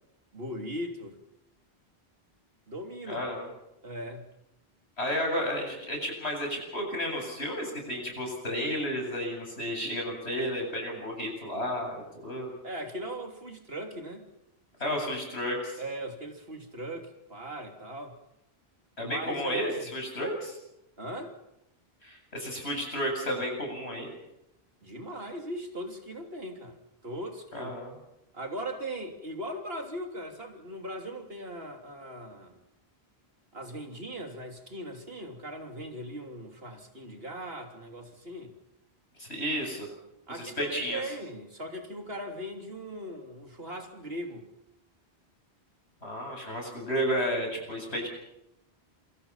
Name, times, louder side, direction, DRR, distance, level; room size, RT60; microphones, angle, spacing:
voice 1, 0.3-1.2 2.7-3.3 3.8-4.3 12.6-14.3 14.8-15.1 15.8-18.2 19.0-19.9 21.0-21.4 24.8-27.7 28.3-32.6 33.5-38.5 40.3-44.5, right 1 dB, 65° right, 3 dB, 3.5 m, -39 dB
voice 2, 3.1-3.4 5.0-12.5 14.8-15.8 19.0-20.6 22.0-24.1 27.5-27.9 39.2-39.9 40.3-41.0 46.0-48.1, equal, 90° left, 1 dB, 8.5 m, -32 dB
27.5 x 25.0 x 5.7 m, 0.86 s
omnidirectional pair, 1.1 m